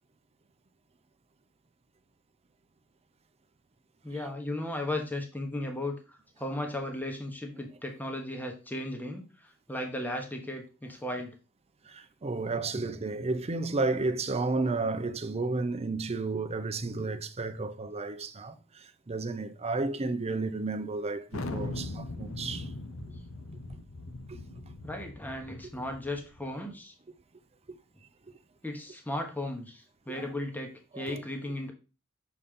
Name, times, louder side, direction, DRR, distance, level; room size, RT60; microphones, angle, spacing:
voice 1, 4.0-9.3 9.7-11.3 12.7-12.8 24.8-26.9 28.6-31.7, left 1 dB, 10° left, 1.2 m, -36 dB
voice 2, 11.9-22.7 24.3-24.4 27.7-27.8 30.1-30.3 30.9-31.2, right 3 dB, 30° right, 0.6 m, -32 dB
Thunder, 21.3-26.5, left 2 dB, 70° left, 0.8 m, -40 dB
6.7 x 4.2 x 3.7 m
head